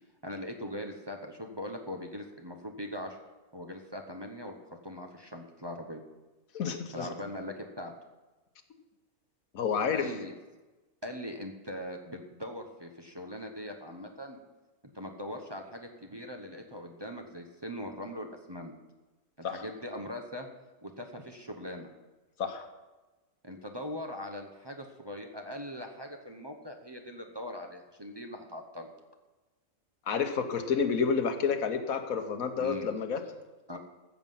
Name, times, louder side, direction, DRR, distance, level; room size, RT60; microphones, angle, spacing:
voice 1, 0.2-3.2 3.5-4.5 4.8-6.0 6.9-7.9 9.9-10.3 11.0-14.4 14.9-18.7 19.4-20.5 20.8-21.9 23.4-28.9 32.6-32.9 33.7-33.8, left 1 dB, 20° right, 2 dB, 0.8 m, -41 dB
voice 2, 6.5-7.1 9.5-10.1 19.4-19.6 22.4-22.7 30.1-33.2, left 6 dB, 85° left, 7 dB, 1.5 m, -29 dB
14.5 x 7.2 x 5.6 m, 1.2 s
omnidirectional pair, 1.4 m